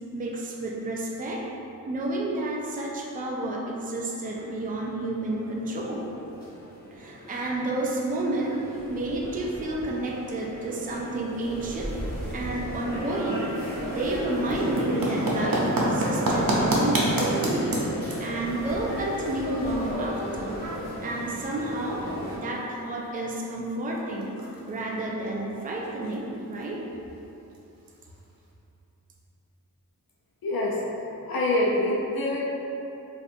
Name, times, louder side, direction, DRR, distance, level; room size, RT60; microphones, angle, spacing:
voice 1, 0.1-1.4 1.9-6.1 6.9-8.6 8.9-13.6 13.9-17.8 18.2-20.6 21.0-22.0 22.3-24.4 24.7-26.8, right 2 dB, 25° right, -2 dB, 0.4 m, -30 dB
sound 1, 4.4-22.4, equal, 25° left, 1.0 m, -35 dB
sound 2, 14.2-28.5, right 1 dB, 75° right, 0.7 m, -32 dB
voice 2, 30.4-30.8 31.3-32.4, left 1 dB, 80° left, -4 dB, 0.6 m, -25 dB
4.2 x 2.5 x 2.6 m, 2.8 s
wide cardioid pair, 115°, 35 cm